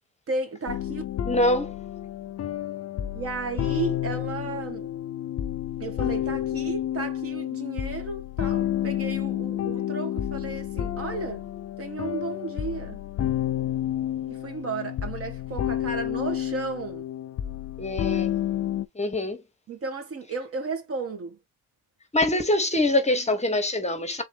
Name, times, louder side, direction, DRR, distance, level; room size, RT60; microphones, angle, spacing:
voice 1, 0.3-1.0 3.1-4.9 5.8-11.5 11.8-13.0 14.3-17.1 19.7-21.4, right 3 dB, 50° right, 1.6 m, -34 dB
sound 1, 0.7-18.9, left 11 dB, 50° left, 0.6 m, -30 dB
voice 2, 1.3-1.7 17.8-18.3 18.9-19.4 22.1-24.2, left 1 dB, 20° left, 1.2 m, -24 dB
3.8 x 3.0 x 3.4 m
cardioid pair, 90°, 30 cm